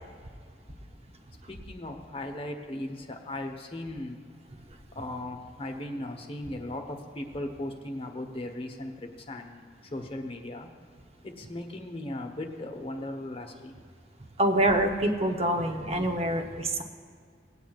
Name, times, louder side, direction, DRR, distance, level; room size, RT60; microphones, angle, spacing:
voice 1, 1.5-4.2 5.0-9.6 9.9-10.7 11.2-13.7, left 1 dB, 35° left, 4 dB, 1.0 m, -37 dB
voice 2, 14.4-16.8, right 1 dB, 35° right, 4 dB, 0.9 m, -25 dB
19.0 x 9.2 x 2.4 m, 2.1 s
head